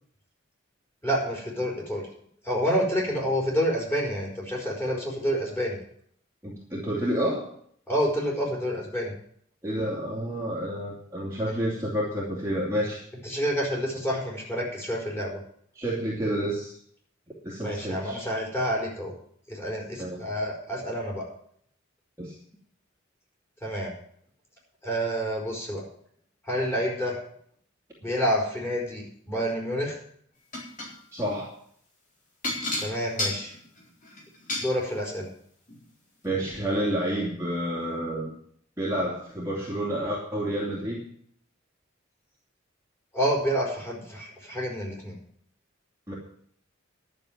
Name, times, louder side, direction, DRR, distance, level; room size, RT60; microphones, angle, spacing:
voice 1, 1.0-2.0 2.4-5.8 7.9-9.1 11.5-11.6 13.2-15.4 17.6-19.1 19.5-21.2 23.6-23.9 24.8-25.9 26.4-27.2 28.0-30.0 32.8-33.5 34.6-35.3 43.1-45.2, equal, 10° left, -3 dB, 4.5 m, -28 dB
voice 2, 6.4-7.5 9.6-13.0 15.8-16.7 17.4-18.2 20.0-20.2 22.2-22.3 31.1-31.5 36.2-38.3 38.8-41.0 46.1-46.2, right 1 dB, 15° right, -5 dB, 2.6 m, -29 dB
sound 1, 30.5-30.9 32.4-34.7 35.7-35.8 36.2-36.3, left 2 dB, 40° left, 4.1 m, -31 dB
11.5 x 7.0 x 9.2 m, 0.64 s
head